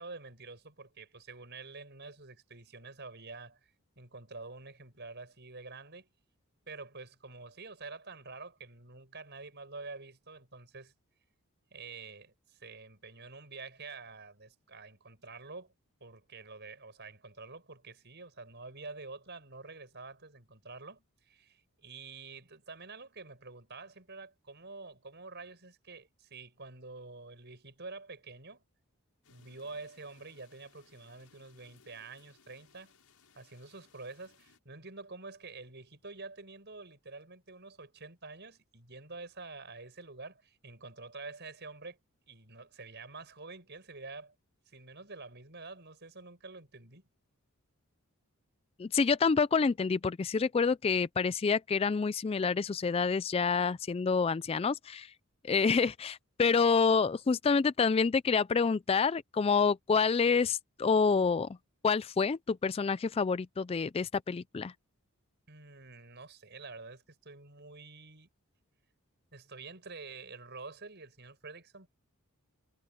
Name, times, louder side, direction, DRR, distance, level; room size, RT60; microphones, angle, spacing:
voice 1, 0.0-3.7 4.0-6.1 6.7-10.9 11.7-15.7 16.0-28.6 29.3-32.9 33.3-42.0 42.3-44.3 44.7-47.1 65.5-68.3 69.3-71.9, right 3 dB, 50° right, 6.3 m, -48 dB
sound 1, 29.2-34.6, left 5 dB, 80° left, 6.3 m, -65 dB
voice 2, 48.8-55.1 55.4-61.5 61.8-64.7, left 5 dB, 25° left, 0.3 m, -28 dB
head